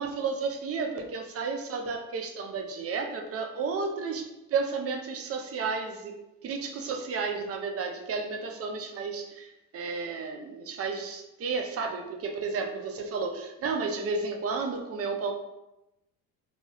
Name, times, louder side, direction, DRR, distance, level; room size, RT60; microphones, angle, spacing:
voice 1, 0.0-6.2 6.4-15.3, right 4 dB, 30° right, 3 dB, 0.5 m, -32 dB
3.2 x 2.2 x 2.8 m, 0.92 s
hypercardioid pair, 70°, 49 cm